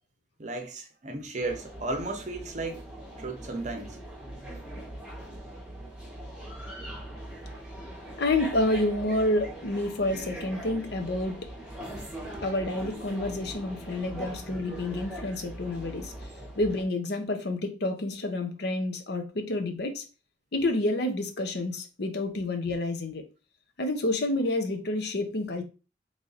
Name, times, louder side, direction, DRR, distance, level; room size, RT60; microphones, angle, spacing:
voice 1, 0.4-2.8 3.2-4.0, right 2 dB, 40° right, 0.7 m, -34 dB
sound 1, 1.4-16.8, right 1 dB, 5° right, 1.0 m, -41 dB
voice 2, 8.2-11.5 12.4-16.1 16.6-20.0 20.5-23.2 23.8-25.6, left 2 dB, 60° left, 0.7 m, -29 dB
3.1 x 2.7 x 3.9 m
head